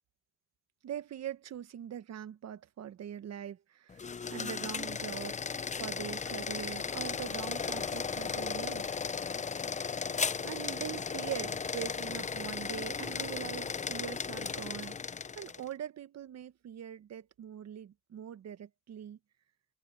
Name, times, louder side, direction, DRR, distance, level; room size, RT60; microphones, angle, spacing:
voice 1, 0.8-5.4 5.8-8.9 10.4-15.0 15.4-19.2, right 10 dB, 60° right, 1.3 m, -42 dB
sound 1, 3.9-15.7, left 5 dB, 25° left, 0.6 m, -36 dB
sound 2, 7.7-8.7 11.4-12.0 13.0-13.1, right 1 dB, 10° right, 4.6 m, -52 dB
cardioid pair, 90°, 30 cm